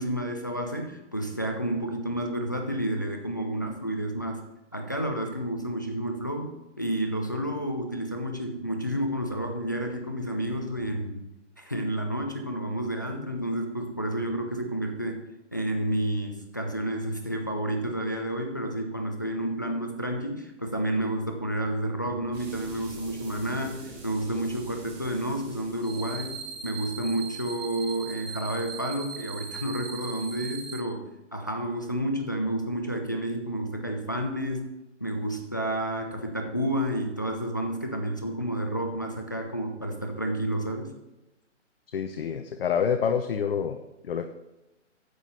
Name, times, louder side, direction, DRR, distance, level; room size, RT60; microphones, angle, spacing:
voice 1, 0.0-4.4 4.7-11.2 11.6-15.2 15.5-26.4 26.6-34.7 35.0-40.9, right 1 dB, 15° left, 3 dB, 0.3 m, -30 dB
sound 1, 22.3-28.8, right 3 dB, 20° right, 2.3 m, -46 dB
sound 2, 25.8-30.8, right 6 dB, 80° right, 1.3 m, -39 dB
voice 2, 41.9-43.8 44.1-44.3, left 7 dB, 50° left, 8 dB, 0.7 m, -27 dB
9.6 x 7.9 x 4.2 m, 0.98 s
hypercardioid pair, 145°, 37 cm